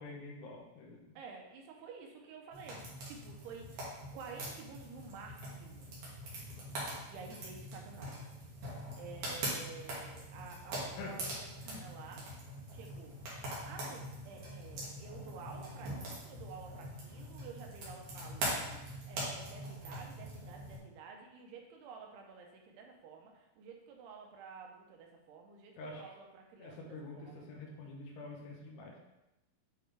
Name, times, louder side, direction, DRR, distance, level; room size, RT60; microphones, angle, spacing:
voice 1, 0.0-1.0 11.0-11.1 11.7-11.9 25.8-26.0 26.6-29.0, left 2 dB, 80° left, -1 dB, 3.1 m, -47 dB
voice 2, 1.2-3.9 4.1-5.9 7.1-8.2 9.0-12.3 12.7-13.2 13.7-27.5, right 5 dB, 80° right, 1 dB, 2.8 m, -51 dB
sound 1, 2.5-20.8, right 1 dB, 60° right, 2.5 m, -43 dB
8.8 x 3.4 x 3.3 m, 0.96 s
omnidirectional pair, 4.7 m